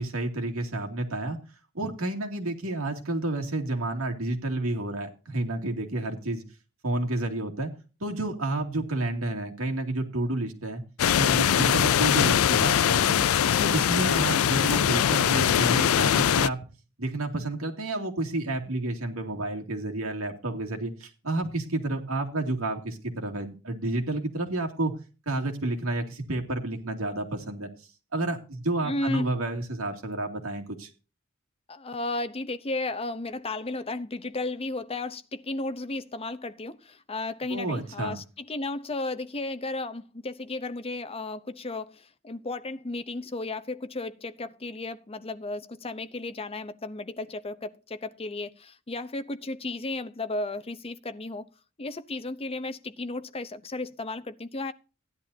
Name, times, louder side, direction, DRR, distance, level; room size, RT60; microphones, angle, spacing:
voice 1, 0.0-1.4 1.7-6.4 6.8-7.7 8.0-10.8 11.2-13.3 13.6-16.6 17.0-24.9 25.3-27.7 28.1-30.9 37.5-38.2, right 2 dB, 80° right, 2.4 m, -30 dB
sound 1, 11.0-16.5, left 9 dB, 85° left, 0.4 m, -22 dB
voice 2, 28.8-29.3 31.7-51.4 51.8-54.7, left 2 dB, 30° left, 0.7 m, -34 dB
15.5 x 10.5 x 2.7 m
head